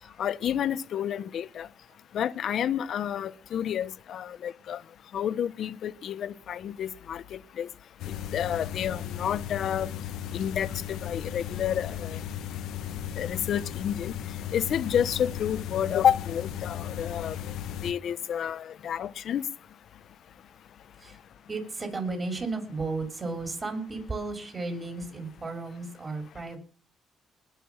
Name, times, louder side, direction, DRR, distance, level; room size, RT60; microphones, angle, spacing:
voice 1, 0.2-1.7 2.1-4.8 5.1-7.7 8.3-9.9 10.3-12.2 13.2-14.1 14.5-17.4 17.8-19.4, left 9 dB, 65° left, 0.9 m, -29 dB
sound 1, 8.0-17.9, left 10 dB, 85° left, 1.2 m, -36 dB
voice 2, 21.5-26.6, right 3 dB, 30° right, 6.4 m, -34 dB
20.5 x 6.9 x 7.3 m
cardioid pair, 90°, 0 cm